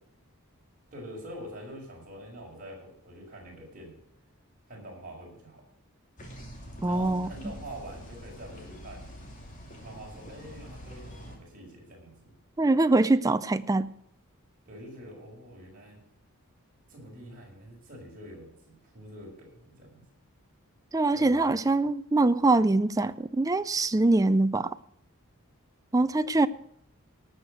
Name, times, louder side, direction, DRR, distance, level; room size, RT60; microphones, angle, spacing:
voice 1, 0.9-4.0 4.7-5.6 6.8-9.1 9.8-12.3 14.7-16.0 16.9-20.0 21.1-21.6, right 1 dB, 40° right, -2 dB, 5.5 m, -45 dB
sound 1, 6.2-11.4, equal, 35° left, 2.8 m, -45 dB
voice 2, 6.8-7.3 12.6-13.9 20.9-24.7 25.9-26.5, right 2 dB, 15° right, 12 dB, 0.4 m, -23 dB
18.0 x 6.7 x 6.4 m, 0.71 s
head